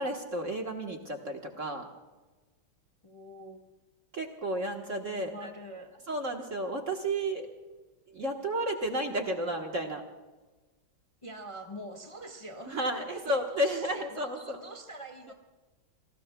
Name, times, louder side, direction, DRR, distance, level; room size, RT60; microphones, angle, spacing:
voice 1, 0.0-1.9 4.1-5.5 6.1-7.5 8.1-10.0 12.6-14.6, right 1 dB, 45° right, 2 dB, 1.4 m, -32 dB
voice 2, 3.0-3.6 5.2-5.9 8.5-8.6 11.2-15.3, right 1 dB, 20° left, 3 dB, 1.0 m, -45 dB
29.0 x 19.5 x 2.2 m, 1.2 s
omnidirectional pair, 2.3 m